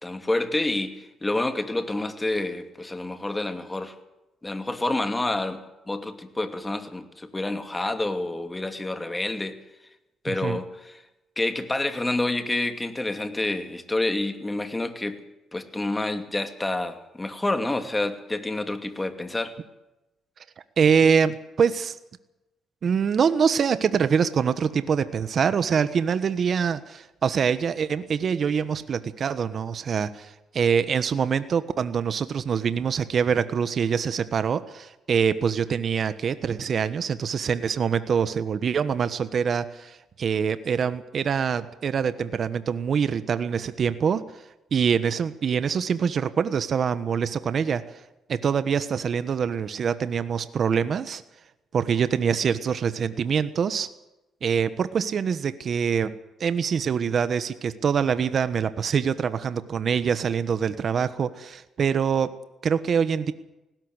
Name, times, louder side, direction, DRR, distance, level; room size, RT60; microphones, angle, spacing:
voice 1, 0.0-3.9 4.4-5.6 5.9-9.6 10.2-11.0 11.4-15.2 15.5-19.5, left 2 dB, 15° left, 8 dB, 2.6 m, -28 dB
voice 2, 10.3-10.6 20.8-22.0 22.8-44.2 44.7-47.8 48.3-51.2 51.7-53.9 54.4-56.1 56.4-62.3 62.6-63.3, right 7 dB, 55° right, 12 dB, 1.2 m, -24 dB
19.0 x 17.0 x 8.2 m, 0.96 s
cardioid pair, 90°, 0 cm